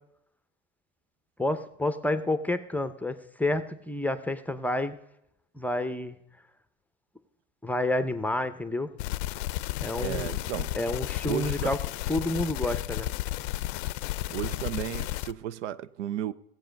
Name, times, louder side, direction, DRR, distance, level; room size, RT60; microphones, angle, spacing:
voice 1, 1.4-5.0 5.6-6.2 7.6-8.9 9.8-10.3 10.8-11.8 12.1-13.1, left 1 dB, 5° left, 0.6 m, -29 dB
sound 1, 9.0-15.3, left 16 dB, 70° left, 0.5 m, -33 dB
voice 2, 10.0-10.7 11.3-11.7 14.3-16.3, right 11 dB, 85° right, 0.6 m, -33 dB
15.5 x 8.2 x 5.2 m
supercardioid pair, 100°, 34 cm